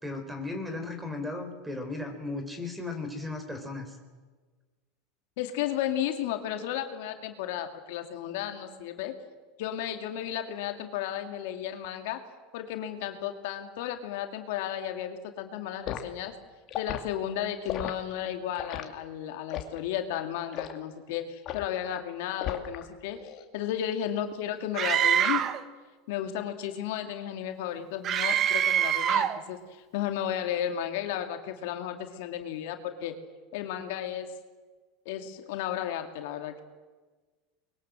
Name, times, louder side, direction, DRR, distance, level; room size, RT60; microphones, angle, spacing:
voice 1, 0.0-4.0, left 2 dB, 10° right, 8 dB, 4.2 m, -36 dB
voice 2, 5.4-9.2 9.6-12.2 12.5-16.3 16.8-25.5 26.1-33.2 33.5-34.4 35.1-36.6, left 10 dB, 70° left, 6 dB, 2.2 m, -34 dB
Liquid, 15.9-16.1 16.7-17.0 17.7-17.9 18.6-18.9 19.5-19.8 20.5-20.8 21.5-21.7 22.4-22.8 23.2-23.4, left 11 dB, 45° left, 2.4 m, -35 dB
Screaming, 24.8-25.6 28.0-29.4, right 9 dB, 40° right, 1.4 m, -25 dB
23.5 x 22.0 x 7.7 m, 1.4 s
supercardioid pair, 115°, 0 cm